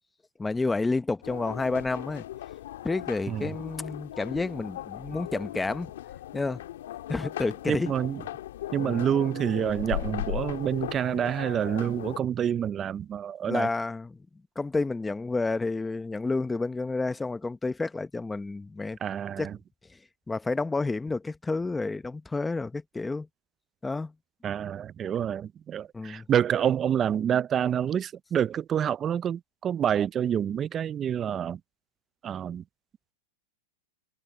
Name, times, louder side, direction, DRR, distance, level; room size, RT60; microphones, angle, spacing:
voice 1, 0.4-2.2 2.8-5.9 6.3-6.6 7.1-7.9 8.8-9.0 13.5-14.2 14.6-19.0 19.4-19.5 20.3-23.3 23.8-24.1 25.9-26.3, left 3 dB, 10° left, 0.9 m, -30 dB
sound 1, 1.2-12.2, left 14 dB, 75° left, 1.9 m, -38 dB
voice 2, 7.7-8.2 8.7-13.7 19.0-19.6 24.4-31.6 32.2-32.6, right 9 dB, 25° right, 0.4 m, -27 dB
hypercardioid pair, 140°, 0 cm